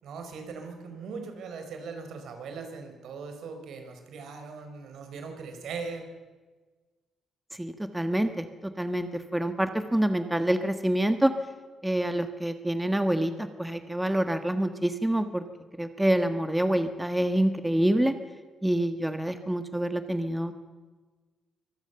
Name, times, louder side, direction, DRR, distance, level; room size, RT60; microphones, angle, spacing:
voice 1, 0.0-6.1, right 5 dB, 75° right, 6 dB, 4.5 m, -40 dB
voice 2, 7.5-11.3 11.8-15.4 15.8-18.1 18.6-20.5, right 1 dB, 5° right, 8 dB, 1.5 m, -27 dB
24.5 x 18.5 x 7.0 m, 1.3 s
cardioid pair, 90°, 0 cm